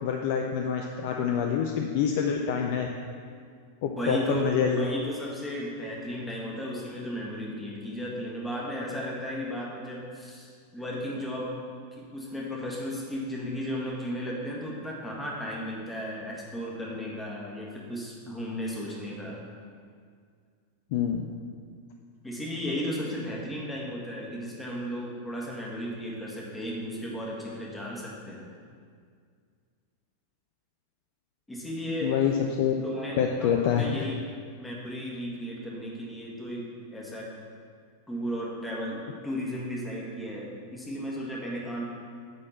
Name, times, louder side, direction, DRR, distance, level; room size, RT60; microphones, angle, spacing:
voice 1, 0.0-2.9 3.8-4.9 20.9-21.3 32.0-32.7 33.2-34.0, left 7 dB, 50° left, 2 dB, 0.5 m, -26 dB
voice 2, 4.0-11.5 11.9-19.4 22.2-28.5 31.5-32.2 32.8-34.2 34.6-37.3 38.1-41.9, equal, 10° left, -4 dB, 1.9 m, -35 dB
9.6 x 4.3 x 7.4 m, 2.1 s
figure-of-eight pair, 90°, 0 cm